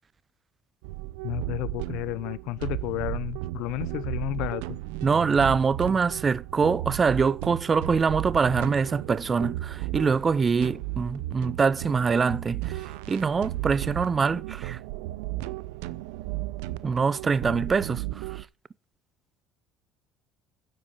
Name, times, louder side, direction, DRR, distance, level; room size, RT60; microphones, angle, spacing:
sound 1, 0.8-18.4, right 16 dB, 85° right, 0.6 m, -34 dB
voice 1, 1.2-4.8, left 17 dB, 75° left, 0.7 m, -32 dB
voice 2, 5.0-14.8 16.8-18.5, right 5 dB, 30° right, 0.5 m, -24 dB
9.7 x 7.8 x 5.2 m
supercardioid pair, 90°, 0 cm